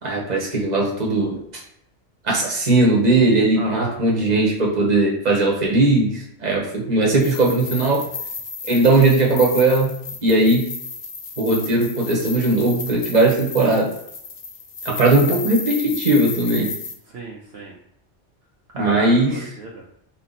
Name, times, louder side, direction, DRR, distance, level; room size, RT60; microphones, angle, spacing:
voice 1, 0.0-1.4 2.2-8.0 8.7-9.9 10.2-10.7 11.4-13.9 14.8-16.7 18.7-19.3, right 2 dB, 35° right, -2 dB, 1.2 m, -18 dB
voice 2, 3.6-4.0 6.6-6.7 17.1-17.7 18.7-19.8, right 2 dB, 65° right, -2 dB, 0.9 m, -32 dB
sound 1, 7.1-16.9, left 4 dB, 45° left, 0.7 m, -33 dB
4.2 x 2.8 x 4.0 m, 0.72 s
omnidirectional pair, 1.2 m